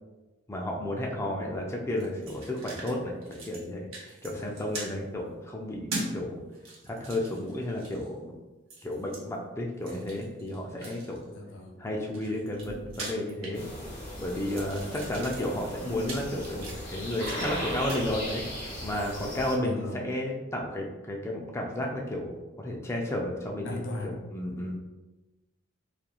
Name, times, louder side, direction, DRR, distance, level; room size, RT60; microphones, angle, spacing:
voice 1, 0.5-6.4 6.8-8.4 8.8-11.2 11.8-13.6 14.2-24.8, left 1 dB, 15° left, 0 dB, 0.3 m, -33 dB
sound 1, 2.0-2.9 3.2-3.7 3.9-4.9 5.9-6.1 6.5-8.1 8.7-9.2 9.8-11.2 11.9-14.0 14.3-17.6 17.9-18.1, right 2 dB, 85° right, 0.8 m, -41 dB
voice 2, 11.3-11.8 14.7-15.0 19.6-20.0 23.6-24.2, left 2 dB, 70° left, 0 dB, 0.6 m, -38 dB
sound 2, 13.5-19.6, equal, 30° left, 1.2 m, -38 dB
3.0 x 2.4 x 2.3 m, 1.1 s
head